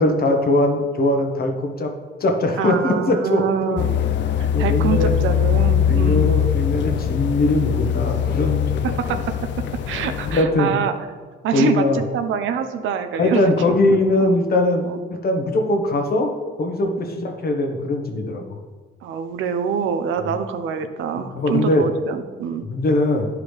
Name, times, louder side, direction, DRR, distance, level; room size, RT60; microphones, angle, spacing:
voice 1, 0.0-1.9 2.2-3.8 4.5-5.1 5.9-9.2 10.3-10.7 11.5-12.0 13.2-16.3 16.6-18.4 20.2-20.3 21.2-21.8 22.6-23.3, left 2 dB, 50° left, 3 dB, 1.2 m, -21 dB
voice 2, 2.6-3.9 4.4-6.3 9.1-9.2 9.9-10.9 11.4-13.5 14.8-15.0 17.0-17.2 19.0-22.6, right 7 dB, 80° right, 9 dB, 0.6 m, -25 dB
sound 1, 3.8-10.4, left 9 dB, 65° left, 0.5 m, -21 dB
10.5 x 4.9 x 3.3 m, 1.4 s
cardioid pair, 90°, 20 cm